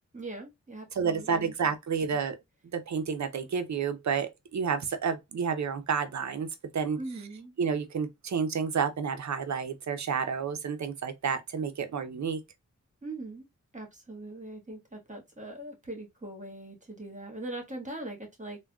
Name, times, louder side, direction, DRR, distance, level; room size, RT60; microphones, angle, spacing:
voice 1, 0.1-1.5 7.0-7.5 13.0-13.5 13.7-18.6, right 2 dB, 25° right, 1.4 m, -41 dB
voice 2, 1.0-2.4 2.7-6.5 6.7-7.0 7.6-12.4, right 6 dB, 65° right, 0.6 m, -30 dB
3.4 x 2.2 x 2.3 m
cardioid pair, 45°, 30 cm